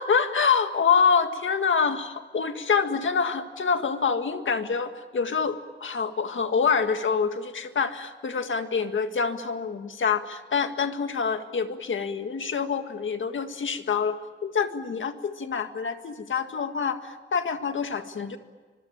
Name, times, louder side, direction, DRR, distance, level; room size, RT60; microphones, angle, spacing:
voice 1, 0.0-18.4, left 6 dB, 90° left, 7 dB, 1.9 m, -26 dB
25.0 x 24.0 x 8.6 m, 1.4 s
wide cardioid pair, 140°, 19 cm